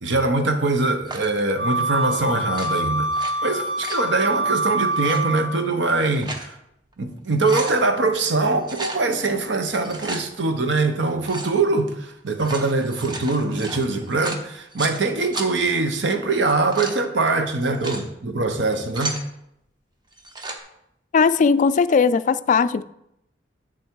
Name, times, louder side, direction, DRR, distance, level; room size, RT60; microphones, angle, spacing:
voice 1, 0.0-6.6 7.0-19.2, right 3 dB, 70° right, 1.0 m, -23 dB
sound 1, 1.1-1.4 2.4-3.3 3.6-4.1 4.9-5.2 5.9-6.5 6.9-7.0 7.3-7.8 8.6-9.0 9.7-10.2 11.2-11.6 12.3-15.0 15.3-15.5 16.4-17.0 17.6-18.0 18.6-19.2 20.1-20.6, right 2 dB, 25° right, 1.0 m, -34 dB
Wind instrument woodwind instrument, 1.6-5.6, right 2 dB, 90° right, 2.3 m, -25 dB
voice 2, 21.1-22.8, left 5 dB, 40° left, 0.3 m, -18 dB
8.0 x 6.9 x 4.7 m
head